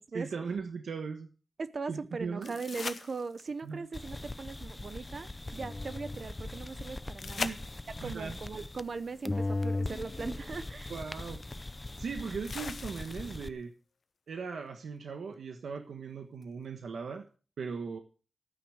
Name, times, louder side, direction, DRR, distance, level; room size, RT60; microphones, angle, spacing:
voice 1, 0.1-1.3 1.9-2.5 3.6-3.9 7.4-8.4 10.9-11.4 12.0-13.7 14.3-17.2 17.6-18.0, right 5 dB, 85° right, 1.3 m, -38 dB
voice 2, 1.6-7.6 8.0-10.9, right 4 dB, 45° right, 0.8 m, -39 dB
sound 1, 2.4-3.7 7.2-8.2 10.1-10.2 12.4-13.5 16.4-16.5, left 5 dB, 50° left, 0.9 m, -40 dB
sound 2, 3.9-9.0 9.2-13.5, left 2 dB, 20° left, 0.6 m, -39 dB
12.5 x 9.3 x 6.4 m
wide cardioid pair, 145°, 0 cm